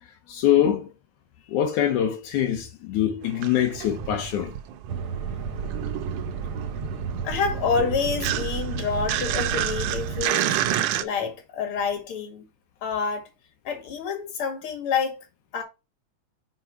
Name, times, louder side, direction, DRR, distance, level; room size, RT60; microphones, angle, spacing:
voice 1, 0.3-0.9 1.5-4.5, left 10 dB, 80° left, 2.5 m, -24 dB
sound 1, 3.2-5.2 5.4-11.0, right 12 dB, 85° right, 2.2 m, -29 dB
sound 2, 4.9-10.3, right 6 dB, 60° right, 1.5 m, -31 dB
voice 2, 7.2-10.6 11.0-12.5 12.8-13.3 13.6-15.3 15.5-15.6, left 6 dB, 50° left, 2.6 m, -28 dB
6.1 x 5.0 x 4.6 m
omnidirectional pair, 3.5 m